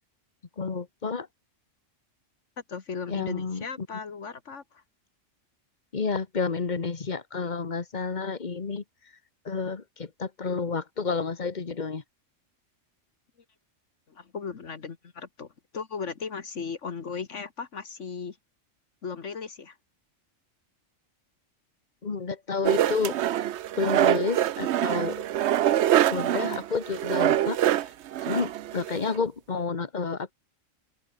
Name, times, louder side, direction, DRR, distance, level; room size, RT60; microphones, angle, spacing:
voice 1, 0.6-1.3 3.1-3.9 5.9-8.8 9.4-12.0 22.0-23.2 23.8-25.2 26.1-27.9 28.2-30.3, left 5 dB, 35° left, 1.4 m, -30 dB
voice 2, 2.7-4.8 14.1-18.4 19.0-19.8, left 5 dB, 70° left, 1.9 m, -37 dB
sound 1, 22.6-29.1, right 12 dB, 65° right, 0.9 m, -25 dB
open air
omnidirectional pair, 1.3 m